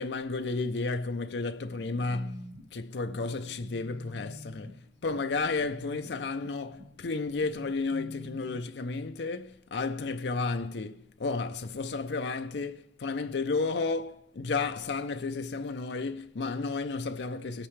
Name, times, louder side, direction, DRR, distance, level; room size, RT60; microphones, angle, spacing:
voice 1, 0.0-17.7, left 3 dB, 75° left, 0.5 m, -32 dB
sound 1, 1.7-8.5, left 1 dB, 85° right, 1.3 m, -48 dB
21.0 x 8.9 x 3.2 m
head